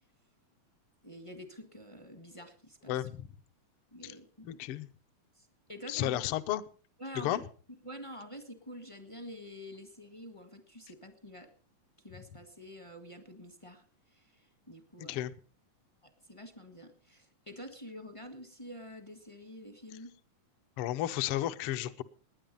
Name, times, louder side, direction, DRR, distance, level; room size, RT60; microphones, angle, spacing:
voice 1, 1.0-3.1 3.9-4.6 5.3-6.2 7.0-7.4 7.8-11.5 12.0-15.2 16.0-20.1, equal, 25° left, 7 dB, 0.7 m, -48 dB
voice 2, 2.9-3.3 4.0-4.1 4.4-4.9 5.9-6.6 7.2-7.4 15.0-15.3 20.8-22.0, left 14 dB, 70° left, 10 dB, 1.4 m, -33 dB
19.5 x 9.7 x 5.4 m, 0.39 s
omnidirectional pair, 3.4 m